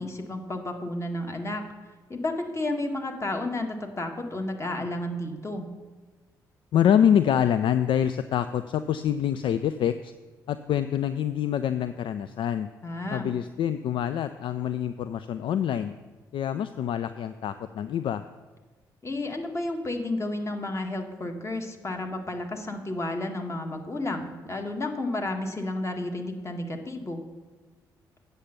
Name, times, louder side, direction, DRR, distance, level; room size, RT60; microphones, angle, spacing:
voice 1, 0.0-1.7 2.1-5.7 12.8-13.3 19.0-27.2, left 2 dB, 25° left, 3 dB, 1.6 m, -32 dB
voice 2, 6.7-10.1 10.5-12.7 13.1-15.9 16.3-18.2, left 9 dB, 55° left, 12 dB, 0.4 m, -26 dB
8.2 x 6.8 x 5.8 m, 1.3 s
figure-of-eight pair, 40°, 10 cm